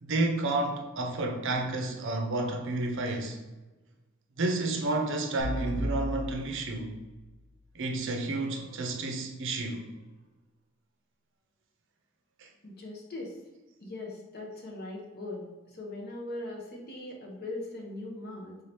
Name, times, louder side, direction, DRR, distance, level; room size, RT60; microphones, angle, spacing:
voice 1, 0.0-3.4 4.4-7.0 7.7-9.9, right 2 dB, 55° right, 0.6 m, -30 dB
sound 1, 5.4-7.6, equal, 85° left, 0.7 m, -36 dB
voice 2, 12.6-13.4 13.8-18.6, left 2 dB, 45° left, 0.8 m, -40 dB
3.9 x 2.7 x 3.3 m
head